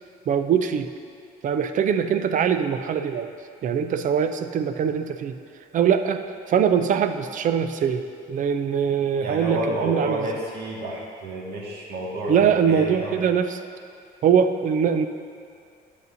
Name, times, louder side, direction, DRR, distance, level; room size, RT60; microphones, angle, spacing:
voice 1, 0.3-0.9 1.4-3.3 3.6-5.3 5.7-6.2 6.5-10.2 12.3-13.6 14.2-15.1, right 7 dB, 50° right, 8 dB, 0.5 m, -22 dB
voice 2, 9.2-13.2, right 1 dB, 75° right, -3 dB, 1.8 m, -30 dB
11.0 x 8.0 x 2.7 m, 2.4 s
cardioid pair, 110°, 17 cm